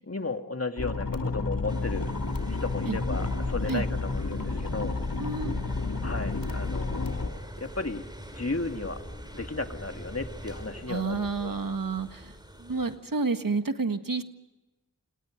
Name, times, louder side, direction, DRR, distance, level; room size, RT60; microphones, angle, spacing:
voice 1, 0.1-2.1 2.5-4.9 6.0-8.0 8.3-9.0 9.3-11.5, left 3 dB, 45° left, 5 dB, 2.3 m, -34 dB
sound 1, 0.8-7.3, left 3 dB, 85° left, 2.9 m, -31 dB
sound 2, 1.7-13.0, equal, 15° right, 5.4 m, -43 dB
voice 2, 5.2-5.6 10.9-12.3 12.6-14.2, right 4 dB, 80° right, 8 dB, 1.7 m, -30 dB
29.5 x 27.5 x 5.1 m, 1.1 s
wide cardioid pair, 55°, 33 cm